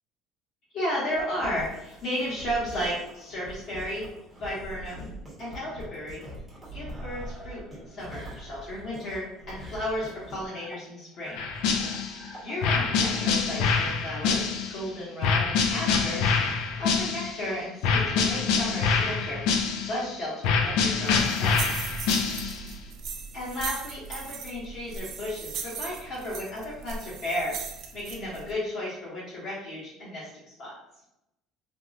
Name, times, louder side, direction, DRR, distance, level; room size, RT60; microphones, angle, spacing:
voice 1, 0.7-4.1 4.3-5.1 5.4-6.3 6.7-11.4 12.4-16.2 16.8-19.4 19.8-21.9 23.3-27.5 27.9-30.3 30.6-30.8, equal, 45° left, -8 dB, 1.0 m, -34 dB
sound 1, 1.1-13.2, equal, 5° right, 0.9 m, -43 dB
sound 2, 11.4-12.2 12.6-14.8 15.2-17.4 17.8-20.1 20.4-22.7, left 5 dB, 70° left, 0.4 m, -25 dB
sound 3, 21.1-28.5, right 6 dB, 50° right, 0.3 m, -38 dB
3.5 x 2.1 x 2.5 m, 0.85 s
cardioid pair, 155°, 0 cm